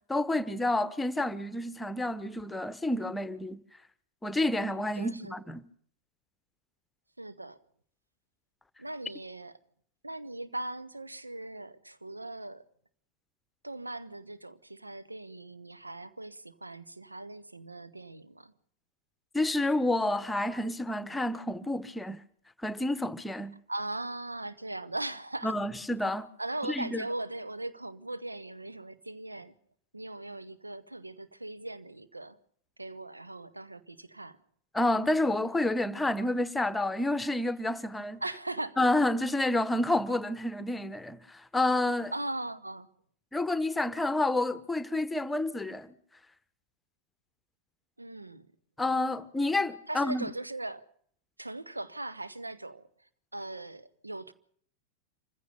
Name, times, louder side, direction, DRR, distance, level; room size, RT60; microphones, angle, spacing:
voice 1, 0.1-3.6 4.2-5.6 19.3-22.2 22.6-23.5 25.4-26.3 26.7-27.0 34.7-38.2 38.8-42.1 43.3-45.9 48.8-50.3, left 2 dB, 10° left, 1.2 m, -29 dB
voice 2, 4.9-5.5 7.2-7.6 8.8-9.5 10.0-12.6 13.6-18.5 23.7-25.5 26.4-29.5 29.9-32.4 32.8-34.4 38.2-38.8 42.1-42.9 48.0-48.5 49.9-50.8 51.4-54.3, right 2 dB, 85° right, 1.1 m, -39 dB
26.5 x 15.5 x 6.8 m
figure-of-eight pair, 90°, 0 cm